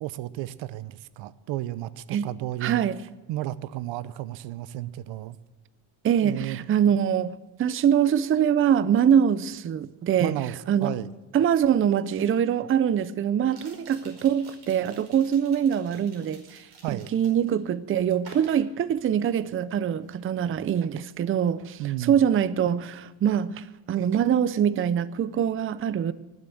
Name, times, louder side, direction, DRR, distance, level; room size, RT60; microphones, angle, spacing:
voice 1, 0.0-2.9 3.3-5.4 6.2-6.6 10.2-10.5 10.8-11.1 16.8-17.1 21.8-22.2, right 14 dB, 85° right, 0.7 m, -32 dB
voice 2, 2.6-3.0 6.0-10.3 10.7-10.9 11.3-26.1, right 9 dB, 30° right, 0.5 m, -24 dB
sound 1, 11.7-11.8 13.4-17.6 18.2-19.5 19.8-20.1, right 3 dB, 55° right, 5.2 m, -51 dB
19.5 x 7.9 x 7.6 m
cardioid pair, 120°, 45 cm